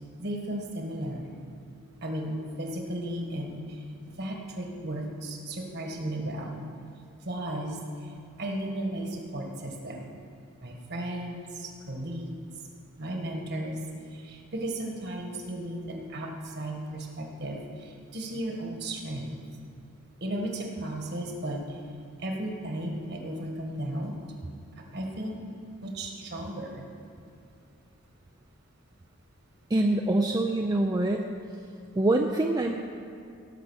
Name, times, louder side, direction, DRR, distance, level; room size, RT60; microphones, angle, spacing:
voice 1, 0.2-1.3 2.0-6.7 7.2-10.1 10.6-12.4 13.0-19.3 20.2-21.8 22.2-24.2 24.7-25.4 25.8-26.8, right 1 dB, 50° right, 2 dB, 1.6 m, -35 dB
voice 2, 29.7-31.2 32.0-32.7, right 2 dB, 20° right, 2 dB, 0.4 m, -25 dB
17.5 x 6.2 x 6.4 m, 2.5 s
head